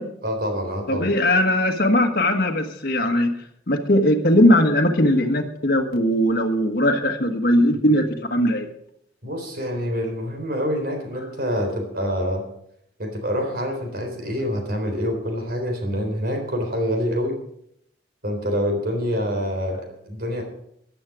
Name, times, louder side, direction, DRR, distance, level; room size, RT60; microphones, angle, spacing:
voice 1, 0.2-1.1 9.2-12.4 13.0-17.4 18.2-20.4, equal, 55° right, 4 dB, 3.8 m, -26 dB
voice 2, 0.9-3.3 3.7-8.7, left 1 dB, 55° left, 4 dB, 1.5 m, -19 dB
15.0 x 10.5 x 4.9 m, 0.73 s
head